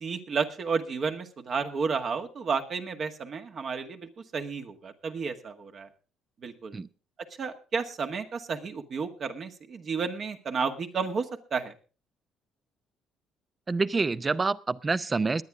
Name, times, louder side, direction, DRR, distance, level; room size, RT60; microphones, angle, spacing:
voice 1, 0.0-5.9 6.4-6.8 7.4-11.7, right 5 dB, 55° right, 1.9 m, -32 dB
voice 2, 13.7-15.4, right 4 dB, 30° right, 0.7 m, -27 dB
21.0 x 9.6 x 3.6 m
hypercardioid pair, 60°, 0 cm